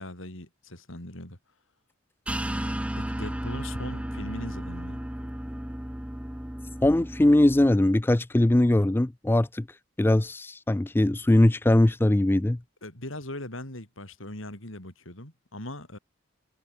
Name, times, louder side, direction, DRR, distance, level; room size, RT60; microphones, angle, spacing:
voice 1, 0.0-1.4 3.0-5.0 12.8-16.0, left 1 dB, 75° left, 6.3 m, -40 dB
sound 1, 2.3-7.7, equal, 5° right, 0.7 m, -34 dB
voice 2, 6.8-9.7 10.0-12.6, left 1 dB, 10° left, 0.3 m, -21 dB
head